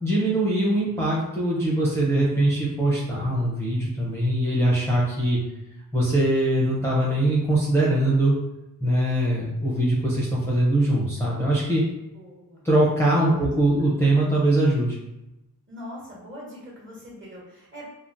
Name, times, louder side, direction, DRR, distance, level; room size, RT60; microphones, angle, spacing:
voice 1, 0.0-5.4 5.9-8.3 8.8-11.8 12.6-15.0, right 1 dB, 5° left, -7 dB, 0.6 m, -22 dB
voice 2, 12.1-12.6 13.1-13.9 15.7-17.9, left 1 dB, 30° right, -5 dB, 1.2 m, -42 dB
3.5 x 2.1 x 2.5 m, 0.94 s
wide cardioid pair, 85°, 37 cm